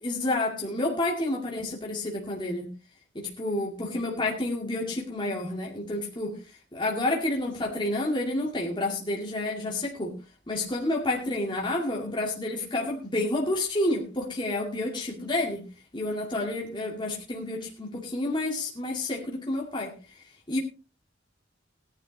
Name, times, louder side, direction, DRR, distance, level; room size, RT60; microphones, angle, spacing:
voice 1, 0.0-2.7 3.1-6.4 6.7-10.1 10.5-15.6 15.9-19.9 20.5-20.6, left 2 dB, 25° left, -1 dB, 2.2 m, -29 dB
17.5 x 11.0 x 3.0 m, 0.30 s
head